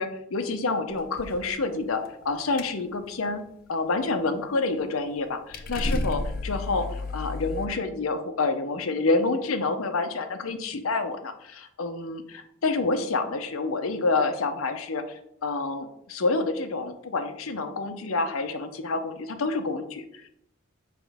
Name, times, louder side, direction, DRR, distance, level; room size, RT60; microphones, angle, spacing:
voice 1, 0.0-3.4 3.7-20.0, left 3 dB, 90° left, 8 dB, 0.7 m, -28 dB
sound 1, 0.9-1.5 1.9-2.3 2.6-2.8 3.1-3.3 5.2-5.3 5.5-7.7, left 2 dB, 45° left, 0.5 m, -31 dB
6.0 x 5.0 x 3.5 m, 0.74 s
head